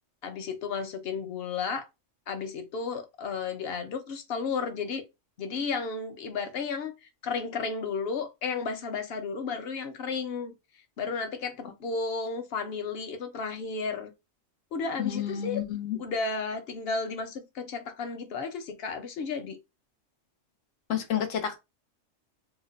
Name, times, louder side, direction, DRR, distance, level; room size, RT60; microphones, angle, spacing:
voice 1, 0.2-1.9 2.3-5.0 5.4-10.5 11.0-14.1 14.7-15.6 16.0-19.6, left 4 dB, 60° left, 0.8 m, -33 dB
voice 2, 15.0-16.0 20.9-21.6, left 9 dB, 90° left, 1.2 m, -30 dB
2.8 x 2.1 x 3.7 m
omnidirectional pair, 1.3 m